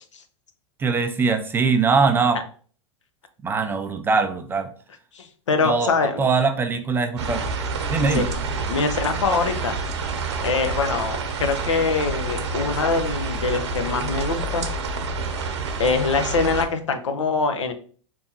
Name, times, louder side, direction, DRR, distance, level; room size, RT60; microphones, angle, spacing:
voice 1, 0.8-2.4 3.4-4.7 5.6-5.9 6.2-7.4 7.9-8.3, right 4 dB, 15° right, 8 dB, 0.4 m, -21 dB
voice 2, 5.1-6.2 8.1-8.2 8.7-9.8 10.4-14.7 15.8-17.7, left 4 dB, 75° left, 8 dB, 0.7 m, -23 dB
sound 1, 7.2-16.7, right 3 dB, 65° right, 0.8 m, -28 dB
4.5 x 3.4 x 2.7 m, 0.44 s
hypercardioid pair, 105°, 16 cm